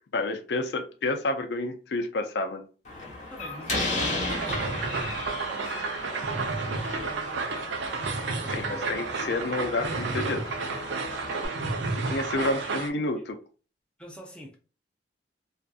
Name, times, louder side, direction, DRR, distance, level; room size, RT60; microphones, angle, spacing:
voice 1, 0.1-2.6 8.5-10.5 12.1-13.3, left 2 dB, 65° left, 0.4 m, -29 dB
Slam, 2.9-11.5, left 2 dB, 40° left, 1.0 m, -35 dB
voice 2, 3.3-5.1 5.5-8.9 12.4-12.8 14.0-14.6, right 1 dB, 5° left, 0.4 m, -46 dB
sound 1, 4.3-12.9, right 4 dB, 80° right, 0.5 m, -31 dB
2.5 x 2.5 x 2.3 m
head